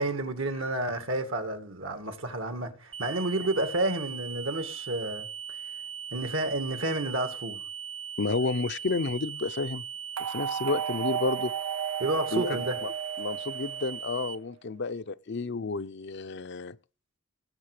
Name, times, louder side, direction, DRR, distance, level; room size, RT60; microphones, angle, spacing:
voice 1, 0.0-5.3 6.1-7.6 12.0-12.8, right 2 dB, 70° right, 2.1 m, -30 dB
sound 1, 2.9-14.4, right 8 dB, 25° right, 0.7 m, -39 dB
voice 2, 8.2-9.8 10.2-11.5 12.3-12.9 13.2-16.8, left 3 dB, 55° left, 0.6 m, -31 dB
sound 2, 10.2-14.4, right 8 dB, 90° right, 0.6 m, -34 dB
17.0 x 7.4 x 5.0 m
head